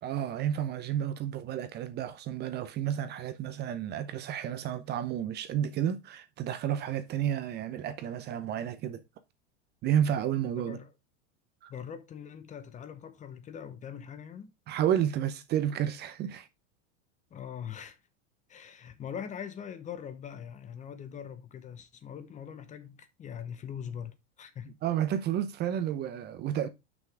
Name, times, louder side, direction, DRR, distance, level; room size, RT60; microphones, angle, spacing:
voice 1, 0.0-9.0 9.8-10.8 11.6-11.7 14.7-16.5 24.8-26.7, right 10 dB, 30° right, 0.6 m, -31 dB
voice 2, 10.6-10.9 11.7-14.5 17.3-18.0 18.5-24.8, left 8 dB, 20° left, 0.7 m, -42 dB
6.1 x 5.7 x 4.7 m
supercardioid pair, 135°, 36 cm